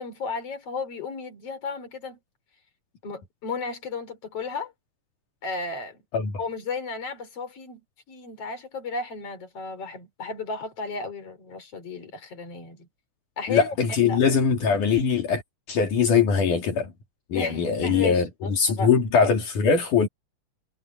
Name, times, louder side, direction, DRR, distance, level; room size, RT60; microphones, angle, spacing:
voice 1, 0.0-2.2 3.0-4.7 5.4-6.0 6.4-7.8 8.1-12.9 13.4-13.7 14.0-14.2 17.3-18.9, left 4 dB, 45° left, 5.2 m, -34 dB
voice 2, 13.5-15.4 15.7-16.9 17.3-20.1, left 6 dB, 75° left, 4.3 m, -22 dB
omnidirectional pair, 3.7 m